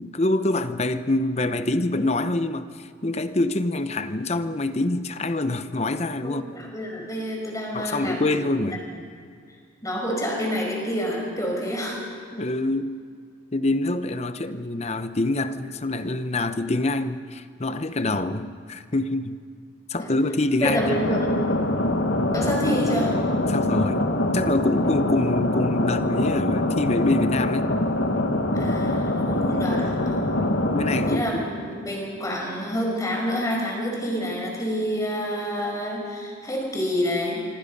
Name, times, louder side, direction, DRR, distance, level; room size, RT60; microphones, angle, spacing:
voice 1, 0.0-6.4 7.7-8.8 12.3-13.0 13.5-19.4 19.9-21.0 23.5-24.1 24.3-27.7 30.1-30.2 30.7-31.5, left 2 dB, 35° left, 11 dB, 0.9 m, -25 dB
voice 2, 6.2-8.8 9.8-12.0 20.0-20.1 20.6-21.3 22.3-23.2 28.5-30.4 31.1-37.4, equal, 20° left, 0 dB, 5.3 m, -28 dB
sound 1, 20.6-31.2, left 1 dB, 75° left, 1.7 m, -24 dB
25.5 x 25.0 x 5.4 m, 2.2 s
head